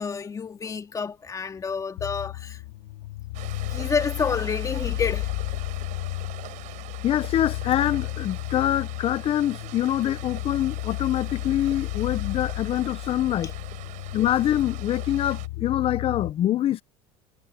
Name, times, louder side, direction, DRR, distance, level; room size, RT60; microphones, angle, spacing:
voice 1, 0.0-2.6 3.6-5.3, left 5 dB, 25° left, 2.4 m, -29 dB
sound 1, 2.0-16.3, left 18 dB, 75° left, 2.5 m, -33 dB
sound 2, 3.3-15.5, right 18 dB, 60° right, 7.4 m, -43 dB
voice 2, 7.0-13.5 14.1-16.8, left 12 dB, 40° left, 0.8 m, -25 dB
supercardioid pair, 115°, 14 cm